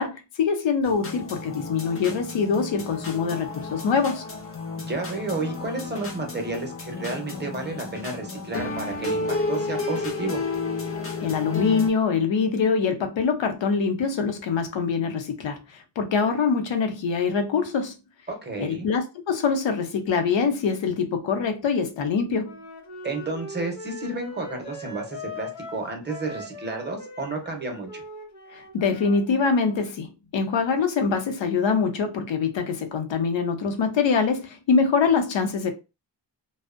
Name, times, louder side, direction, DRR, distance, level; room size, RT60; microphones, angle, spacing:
voice 1, 0.0-4.2 11.2-15.6 16.0-17.9 18.6-22.5 28.5-35.7, left 5 dB, 85° left, 0.6 m, -24 dB
sound 1, 0.8-11.9, left 3 dB, 35° left, 0.4 m, -32 dB
voice 2, 4.8-10.4 18.3-18.9 23.0-28.0, right 3 dB, 25° right, 0.5 m, -31 dB
Wind instrument woodwind instrument, 22.4-29.8, left 1 dB, 65° left, 0.9 m, -40 dB
2.5 x 2.0 x 2.4 m
wide cardioid pair, 175°, 43 cm